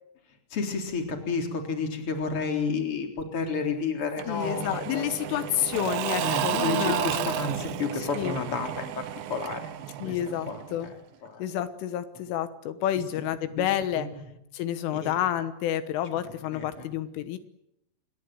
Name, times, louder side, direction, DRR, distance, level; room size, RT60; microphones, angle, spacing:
voice 1, 0.5-5.5 6.2-9.6 10.0-10.2 10.5-10.9 11.2-11.4 13.6-13.7 14.0-14.1 15.0-15.2 16.5-16.9, left 4 dB, 30° left, 4 dB, 4.1 m, -31 dB
Engine / Mechanisms / Drill, 4.2-10.9, right 13 dB, 70° right, 3.3 m, -32 dB
voice 2, 4.3-7.3 8.0-8.4 10.0-10.9 11.4-14.1 14.5-17.4, left 11 dB, 80° left, 11 dB, 3.8 m, -29 dB
27.5 x 22.0 x 9.1 m, 0.82 s
omnidirectional pair, 5.7 m